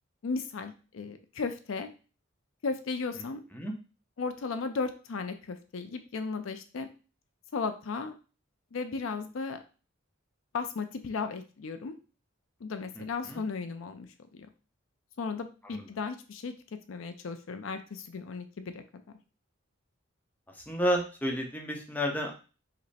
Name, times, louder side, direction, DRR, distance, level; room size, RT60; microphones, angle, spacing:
voice 1, 0.2-1.9 2.6-3.4 4.2-6.9 7.5-8.1 8.7-9.6 10.5-11.9 12.6-14.1 14.3-14.5 15.2-16.5 16.9-19.2, left 4 dB, 70° left, 8 dB, 0.5 m, -35 dB
voice 2, 13.0-13.4 15.6-15.9 20.5-22.3, equal, 10° left, 2 dB, 0.7 m, -31 dB
5.1 x 2.1 x 4.1 m, 0.35 s
head